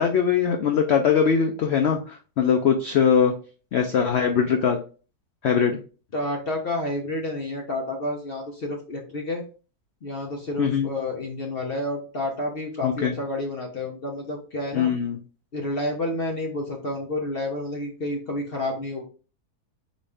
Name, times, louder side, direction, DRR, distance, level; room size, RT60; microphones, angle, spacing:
voice 1, 0.0-3.3 3.7-4.8 5.4-5.8 10.6-10.9 12.8-13.1 14.7-15.2, left 7 dB, 90° left, 4 dB, 0.5 m, -21 dB
voice 2, 6.1-9.4 10.0-14.9 15.5-19.0, left 1 dB, 45° left, 1 dB, 0.8 m, -30 dB
4.0 x 3.1 x 3.4 m, 0.36 s
omnidirectional pair, 1.7 m